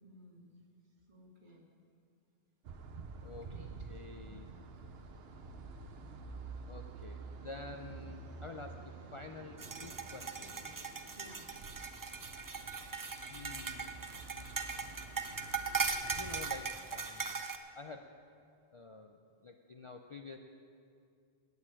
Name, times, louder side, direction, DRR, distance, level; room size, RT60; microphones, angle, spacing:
voice 1, 0.0-0.6 1.1-1.7 3.3-3.9 4.2-4.6 11.1-11.5, equal, 50° right, -1 dB, 1.8 m, -57 dB
sound 1, 2.6-16.6, right 4 dB, 75° right, 1.0 m, -49 dB
voice 2, 3.9-4.5 6.7-10.7 13.3-14.0 14.3-14.6 16.0-17.4 17.7-18.1 18.7-20.4, left 3 dB, 40° left, 4 dB, 0.4 m, -49 dB
sound 2, 9.6-17.6, right 5 dB, 30° right, 0.4 m, -39 dB
9.4 x 8.4 x 8.7 m, 2.3 s
omnidirectional pair, 1.1 m